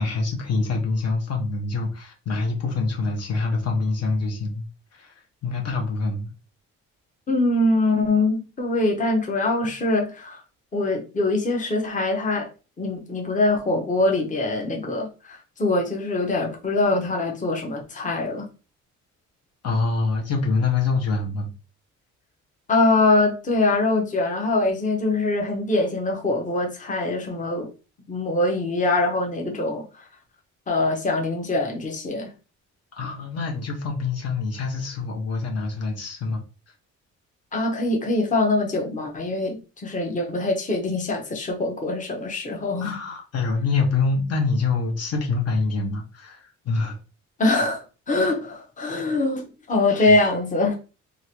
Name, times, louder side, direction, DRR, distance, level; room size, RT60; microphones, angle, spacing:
voice 1, 0.0-4.6 4.9-5.1 5.4-6.3 19.6-21.5 33.0-36.4 42.8-47.0 50.1-50.2, left 4 dB, 55° left, 0.9 m, -25 dB
voice 2, 7.3-10.4 10.7-12.5 12.8-18.5 22.7-27.7 28.1-30.1 30.7-32.3 37.5-42.9 47.4-50.7, left 2 dB, 25° left, 0.9 m, -23 dB
2.9 x 2.5 x 2.9 m
cardioid pair, 90°, 30 cm